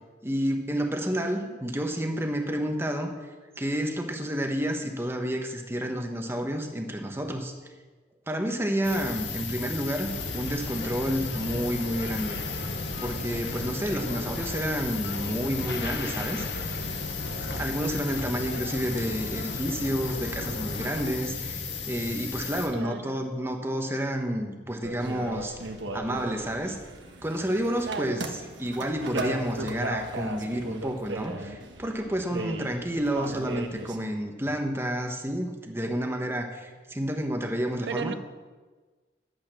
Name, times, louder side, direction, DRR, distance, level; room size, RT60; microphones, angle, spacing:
voice 1, 0.2-3.1 3.6-7.5 8.3-12.6 13.0-16.7 17.5-25.5 25.9-26.8 27.2-28.2 28.6-38.2, equal, 15° right, 4 dB, 1.1 m, -30 dB
voice 2, 1.2-1.6 22.7-23.2 27.8-28.2 37.9-38.2, right 4 dB, 70° right, 12 dB, 0.6 m, -35 dB
sound 1, 8.8-22.7, left 5 dB, 85° left, 1.8 m, -35 dB
sound 2, 10.1-21.1, left 2 dB, 60° left, 1.1 m, -37 dB
sound 3, 24.8-34.0, right 2 dB, 90° right, 1.3 m, -36 dB
12.0 x 8.3 x 6.1 m, 1.3 s
head